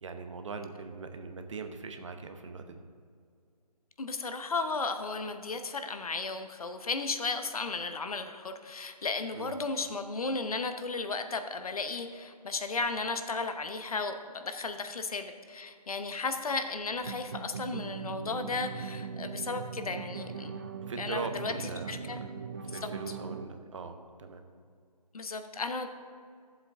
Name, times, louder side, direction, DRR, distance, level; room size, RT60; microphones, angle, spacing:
voice 1, 0.0-2.8 9.3-9.5 20.9-22.1 22.6-24.4, right 4 dB, 50° right, 7 dB, 0.9 m, -40 dB
voice 2, 4.0-20.5 21.0-21.5 21.9-22.2 22.8-22.9 25.1-25.9, left 3 dB, 60° left, 8 dB, 0.9 m, -34 dB
sound 1, 16.9-23.5, right 5 dB, 30° right, 0.4 m, -40 dB
14.0 x 7.6 x 3.5 m, 2.2 s
figure-of-eight pair, 150°, 21 cm